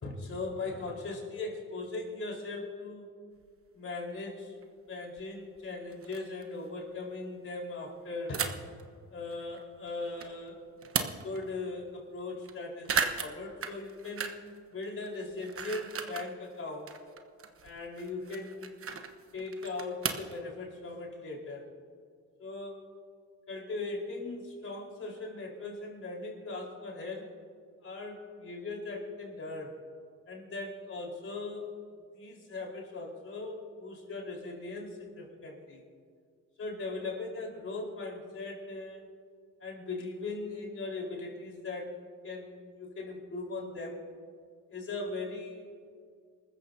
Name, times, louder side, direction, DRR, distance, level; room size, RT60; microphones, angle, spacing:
voice 1, 0.0-3.1 3.7-4.6 4.9-8.5 9.1-10.7 11.2-14.3 14.7-16.9 17.6-18.7 19.3-21.7 22.4-22.9 23.5-27.3 27.8-29.8 30.3-31.7 32.1-35.8 36.6-39.0 39.6-41.9 42.2-44.0 44.7-45.6, left 3 dB, 45° left, -1 dB, 4.4 m, -39 dB
sound 1, 3.4-3.5 4.6-4.7 5.2-5.3 5.6-5.7 5.9-6.4 8.3-8.8 9.3-10.3 10.7-11.5 11.9-12.0 12.2-12.5 12.8-14.6 14.8-16.3 16.7-20.4, right 6 dB, 45° right, 1.1 m, -36 dB
28.0 x 14.0 x 2.8 m, 2.1 s
cardioid pair, 90°, 30 cm